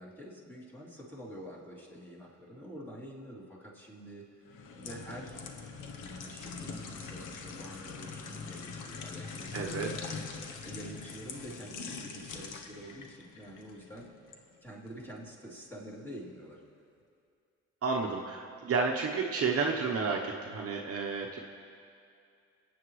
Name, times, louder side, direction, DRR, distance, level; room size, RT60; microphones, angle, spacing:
voice 1, 0.0-4.3 4.8-5.4 6.0-10.2 10.6-14.1 14.6-16.6, equal, 5° left, -6 dB, 3.0 m, -47 dB
sound 1, 4.5-14.4 14.9-15.1, left 5 dB, 90° left, 1.0 m, -43 dB
voice 2, 9.5-9.9 17.8-21.4, right 4 dB, 50° right, 0 dB, 1.0 m, -31 dB
25.5 x 8.6 x 3.2 m, 2.4 s
cardioid pair, 90°, 30 cm